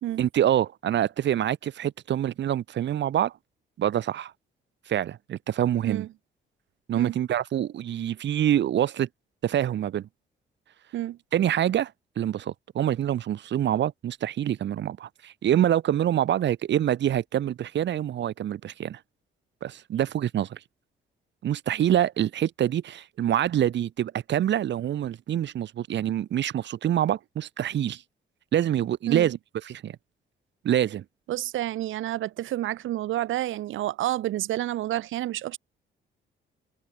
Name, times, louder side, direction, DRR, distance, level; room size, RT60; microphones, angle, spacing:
voice 1, 0.2-3.3 3.8-4.3 4.9-6.0 6.9-9.1 9.4-10.1 11.3-11.9 12.2-19.0 19.6-20.6 21.4-28.0 28.5-29.4 29.6-30.0 30.6-31.0, right 11 dB, 65° right, 1.5 m, -26 dB
voice 2, 31.3-35.6, right 14 dB, 80° right, 1.6 m, -29 dB
cardioid pair, 90°, 20 cm